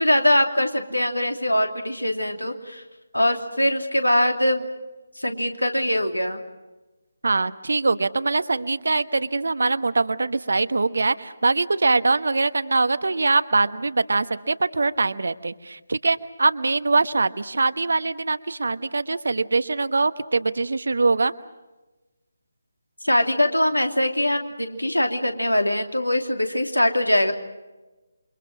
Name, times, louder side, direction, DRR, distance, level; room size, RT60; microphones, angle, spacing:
voice 1, 0.0-2.8 3.1-4.7 5.2-6.4 23.0-27.3, left 1 dB, 85° left, 5 dB, 2.9 m, -22 dB
voice 2, 7.2-21.3, right 3 dB, 60° right, 13 dB, 1.1 m, -23 dB
28.5 x 24.5 x 6.2 m, 1.1 s
figure-of-eight pair, 150°, 0 cm